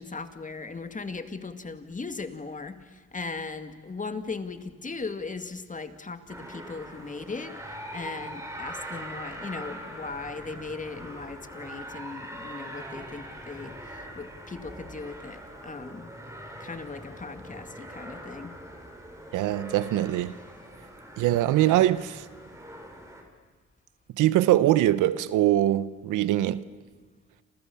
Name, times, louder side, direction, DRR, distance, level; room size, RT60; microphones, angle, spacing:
voice 1, 0.0-16.1 16.6-18.5 20.3-20.4, left 4 dB, 25° left, 2.2 m, -38 dB
sound 1, 6.3-23.2, right 1 dB, 10° right, 5.9 m, -42 dB
voice 2, 19.3-20.3 21.2-22.2 24.1-26.7, right 14 dB, 90° right, 1.0 m, -23 dB
28.5 x 27.5 x 7.1 m
cardioid pair, 90°, 30 cm